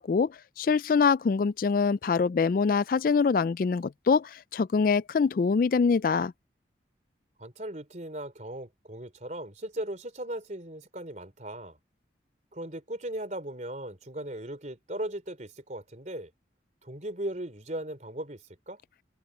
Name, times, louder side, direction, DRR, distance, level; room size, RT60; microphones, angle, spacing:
voice 1, 0.0-6.3, left 5 dB, 50° left, 0.3 m, -24 dB
voice 2, 7.4-11.8 12.5-16.3 16.8-18.8, right 1 dB, 40° right, 3.6 m, -38 dB
open air
head